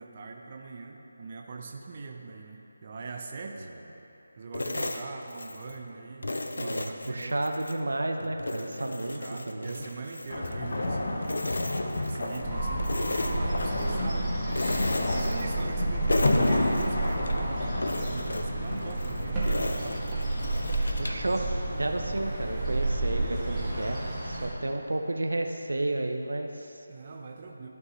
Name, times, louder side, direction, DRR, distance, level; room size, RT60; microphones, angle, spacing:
voice 1, 0.0-3.7 4.4-7.4 8.8-11.1 12.0-14.4 15.1-20.0 23.0-23.5 26.9-27.7, right 4 dB, 35° right, 2 dB, 0.6 m, -42 dB
sound 1, 4.5-5.8 6.2-7.8 8.2-10.9 11.2-12.5 12.8-14.1 14.5-15.8 16.1-17.4 17.8-21.3, left 2 dB, 80° left, 0.6 m, -35 dB
voice 2, 6.6-9.2 9.5-9.9 21.0-21.5 21.8-24.0 24.2-26.8, right 2 dB, 85° right, 4 dB, 0.7 m, -31 dB
sound 2, 10.3-18.8, left 2 dB, 60° left, 1.0 m, -30 dB
sound 3, 12.4-24.5, right 2 dB, 10° right, 2.0 m, -31 dB
14.5 x 5.3 x 3.1 m, 3.0 s
figure-of-eight pair, 165°, 0 cm